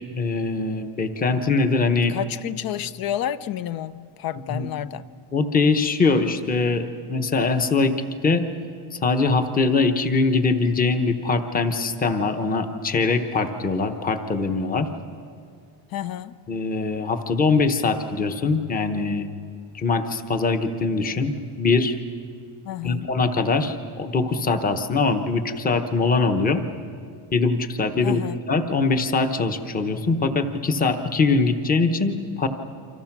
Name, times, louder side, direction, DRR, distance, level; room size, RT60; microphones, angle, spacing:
voice 1, 0.1-2.1 4.5-4.7 5.3-7.9 8.2-8.4 8.9-14.9 16.5-19.3 19.7-22.0 22.8-26.6 27.3-28.2 28.5-32.5, left 4 dB, 15° left, 1.0 m, -22 dB
voice 2, 2.1-5.1 15.9-16.4 22.6-23.2 28.0-28.4, left 11 dB, 45° left, 0.7 m, -30 dB
28.5 x 26.0 x 6.1 m
cardioid pair, 165°, 49 cm